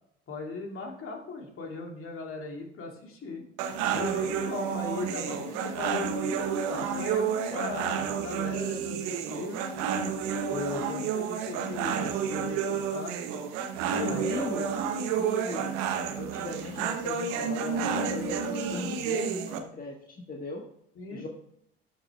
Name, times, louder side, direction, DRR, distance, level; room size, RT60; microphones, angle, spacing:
voice 1, 0.3-3.5 3.9-6.2 6.7-9.6 10.5-13.1 14.1-14.5 21.0-21.3, left 3 dB, 45° left, 1 dB, 2.8 m, -38 dB
sound 1, 3.6-19.6, right 7 dB, 70° right, 1.2 m, -30 dB
voice 2, 13.9-14.7 15.2-15.8 16.2-20.6 21.1-21.3, left 2 dB, 30° left, 0 dB, 1.7 m, -38 dB
13.0 x 6.1 x 3.3 m, 0.70 s
hypercardioid pair, 55°, 30 cm